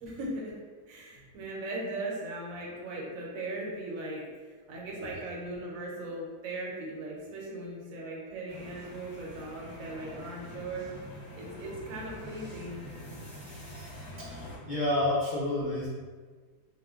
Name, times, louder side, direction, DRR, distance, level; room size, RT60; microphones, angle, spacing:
voice 1, 0.0-4.3 4.7-10.9 11.3-12.9, right 2 dB, 65° right, -3 dB, 1.1 m, -38 dB
sound 1, 8.5-14.6, equal, 50° left, 1.2 m, -45 dB
voice 2, 14.2-15.9, left 1 dB, 70° left, -10 dB, 0.4 m, -29 dB
3.0 x 2.2 x 3.5 m, 1.5 s
omnidirectional pair, 1.7 m